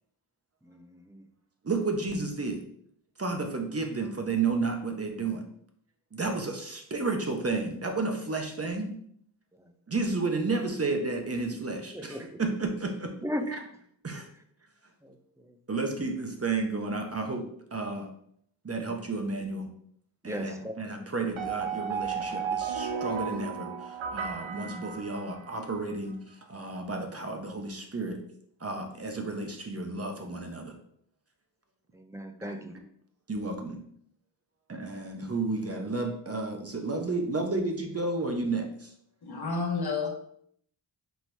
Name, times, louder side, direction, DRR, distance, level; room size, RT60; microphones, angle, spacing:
voice 1, 0.6-1.2 9.6-9.7 11.9-12.4 13.2-13.5 15.0-15.2 15.4-15.5 20.2-20.8 31.9-32.8, equal, 5° right, 7 dB, 0.5 m, -37 dB
voice 2, 1.6-2.6 3.2-5.4 6.1-8.9 9.9-13.1 14.0-14.3 15.7-17.4 17.7-18.1 18.6-19.7 20.2-26.2 26.5-28.2 28.6-30.8 32.4-32.5 33.3-33.8 34.7-38.9, right 3 dB, 30° right, 3 dB, 0.9 m, -32 dB
sound 1, 21.4-25.7, right 7 dB, 75° right, 0.8 m, -34 dB
voice 3, 39.2-40.1, left 4 dB, 50° left, 2 dB, 1.2 m, -30 dB
4.5 x 2.9 x 3.4 m, 0.66 s
cardioid pair, 50°, 48 cm